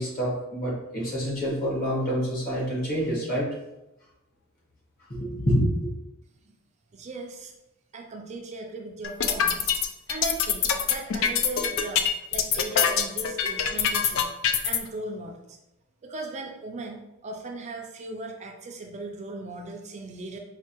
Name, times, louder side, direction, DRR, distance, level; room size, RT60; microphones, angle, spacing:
voice 1, 0.0-3.5 5.1-5.9, equal, 45° left, -5 dB, 1.3 m, -27 dB
voice 2, 6.9-7.5 7.9-9.7 10.1-14.3 14.6-15.6 16.0-20.4, right 2 dB, 35° right, 2 dB, 0.4 m, -37 dB
sound 1, 9.0-14.8, left 7 dB, 65° left, 0.3 m, -24 dB
4.4 x 2.3 x 3.0 m, 0.92 s
head